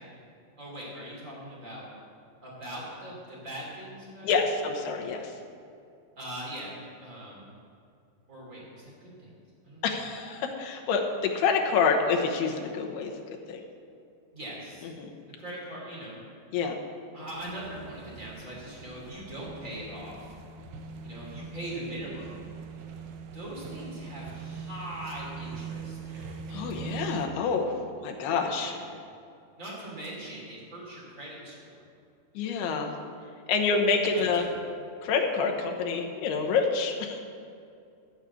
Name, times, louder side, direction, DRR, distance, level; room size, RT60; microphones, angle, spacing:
voice 1, 0.6-1.8 2.4-4.3 4.8-5.0 6.2-6.7 7.0-7.4 8.3-9.3 9.6-10.0 14.3-14.9 15.4-16.2 17.1-20.3 21.0-22.4 23.3-26.0 28.5-28.7 29.6-31.7 34.1-34.6, right 1 dB, 25° right, -5 dB, 2.4 m, -41 dB
voice 2, 4.2-5.3 9.8-13.6 14.8-15.1 16.5-16.8 26.5-28.7 32.3-32.9 33.5-34.4 35.0-37.2, left 5 dB, 80° left, 2 dB, 2.9 m, -27 dB
sound 1, 17.3-27.3, right 5 dB, 85° right, 2.8 m, -42 dB
13.0 x 4.9 x 8.1 m, 2.4 s
omnidirectional pair, 4.8 m